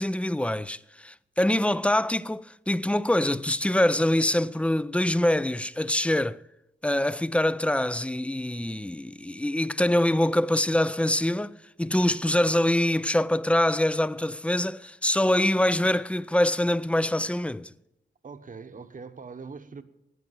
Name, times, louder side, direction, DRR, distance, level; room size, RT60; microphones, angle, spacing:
voice 1, 0.0-6.4 6.8-17.7, left 1 dB, 5° left, 0.4 m, -24 dB
voice 2, 18.2-19.8, right 5 dB, 45° right, 1.1 m, -42 dB
11.0 x 9.2 x 7.6 m
cardioid pair, 70°, 19 cm